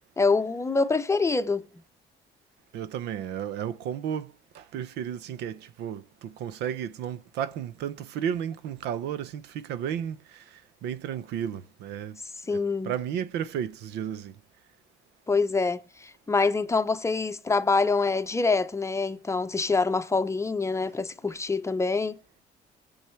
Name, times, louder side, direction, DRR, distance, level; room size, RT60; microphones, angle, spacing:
voice 1, 0.2-1.7 12.5-12.9 15.3-22.2, left 4 dB, 15° left, 0.7 m, -25 dB
voice 2, 2.7-12.2 12.5-14.3, right 9 dB, 85° right, 0.9 m, -33 dB
21.0 x 7.2 x 4.5 m
cardioid pair, 110°, 17 cm